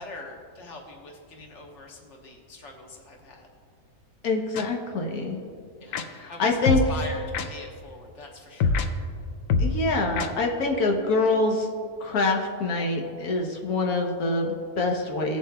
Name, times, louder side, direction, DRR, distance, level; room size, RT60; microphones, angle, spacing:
voice 1, 0.0-3.5 5.8-6.6 6.9-8.8, left 2 dB, 55° left, 1 dB, 1.4 m, -42 dB
voice 2, 4.2-5.4 6.1-6.8 9.6-11.7 12.0-15.4, left 3 dB, 90° left, 2 dB, 1.4 m, -25 dB
sound 1, 4.5-4.6 5.9-6.0 6.7-6.9 7.3-7.5 8.6-8.9 9.5-9.7 10.2-10.3, left 5 dB, 70° left, 1.0 m, -23 dB
17.0 x 7.4 x 2.3 m, 2.2 s
omnidirectional pair, 1.5 m